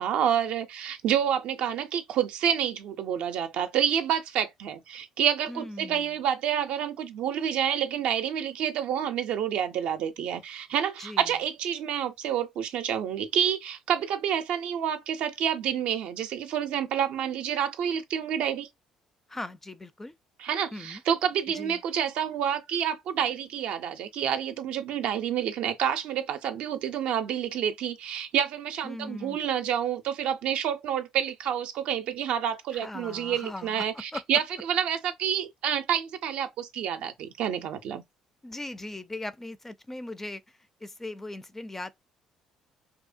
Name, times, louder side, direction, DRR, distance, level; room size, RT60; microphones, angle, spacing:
voice 1, 0.0-18.7 20.4-38.0, right 9 dB, 70° right, 0.4 m, -28 dB
voice 2, 5.5-6.1 11.0-11.3 19.3-20.1 20.7-21.0 21.5-21.8 28.8-29.4 32.7-34.2 38.4-41.9, left 2 dB, 15° left, 0.4 m, -39 dB
2.7 x 2.1 x 2.4 m
supercardioid pair, 65°, 2 cm